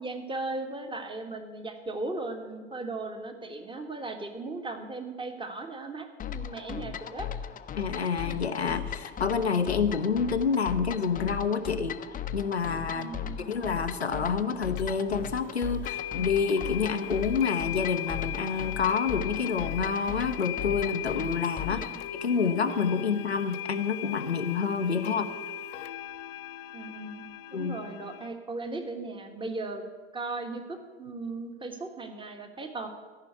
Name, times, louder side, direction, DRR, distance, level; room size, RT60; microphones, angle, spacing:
voice 1, 0.0-7.3 12.9-13.5 21.7-21.8 24.8-25.2 26.7-27.2 27.5-29.8 30.1-32.9, right 3 dB, 15° right, 6 dB, 1.5 m, -37 dB
sound 1, 6.2-22.1, left 9 dB, 25° left, 0.7 m, -37 dB
voice 2, 7.8-12.0 12.3-13.1 13.5-21.9 22.1-25.3 27.5-27.8, left 5 dB, 90° left, 7 dB, 0.7 m, -28 dB
sound 2, 14.8-14.9 15.8-28.3, left 10 dB, 60° left, 0.7 m, -38 dB
14.5 x 5.7 x 9.3 m, 1.4 s
figure-of-eight pair, 70°, 31 cm